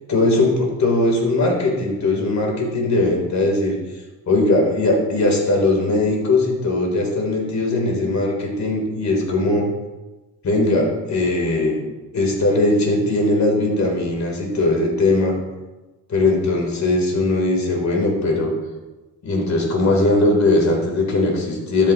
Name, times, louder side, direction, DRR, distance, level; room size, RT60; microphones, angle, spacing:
voice 1, 0.1-3.8 4.3-9.7 10.4-11.8 12.1-15.3 16.1-18.5 19.2-21.9, left 2 dB, 45° left, 0 dB, 3.4 m, -19 dB
12.5 x 8.8 x 3.0 m, 1.1 s
cardioid pair, 85°, 37 cm